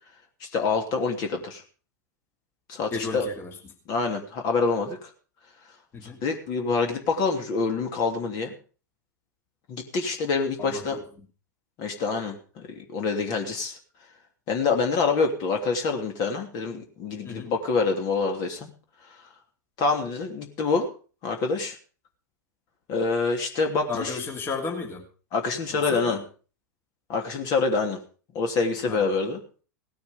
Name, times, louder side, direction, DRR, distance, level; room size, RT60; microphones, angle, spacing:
voice 1, 0.4-1.6 2.7-3.3 3.9-5.1 6.0-8.5 9.7-11.0 11.8-12.4 12.8-13.8 14.5-18.7 19.8-20.9 21.2-21.8 22.9-24.1 25.3-26.2 27.1-28.0 28.3-29.4, left 4 dB, 40° left, 3 dB, 3.0 m, -26 dB
voice 2, 2.9-3.6 5.9-6.2 10.6-11.0 17.2-17.5 23.9-25.0 25.7-26.2 28.8-29.1, left 4 dB, 25° left, 2 dB, 2.8 m, -33 dB
17.5 x 9.4 x 5.3 m, 0.38 s
figure-of-eight pair, 95°, 10 cm